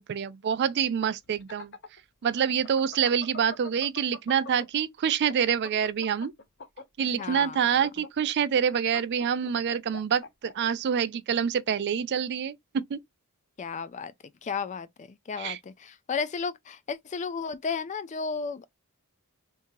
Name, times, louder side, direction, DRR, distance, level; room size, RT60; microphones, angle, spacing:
voice 1, 0.0-1.7 2.2-6.3 7.0-13.0 15.4-15.6, right 8 dB, 50° right, 0.3 m, -26 dB
sound 1, 1.2-4.8 5.2-10.5, left 4 dB, 50° left, 0.7 m, -43 dB
voice 2, 7.1-7.6 13.6-14.1 14.4-18.7, left 5 dB, 30° left, 0.3 m, -33 dB
3.5 x 2.7 x 2.9 m
head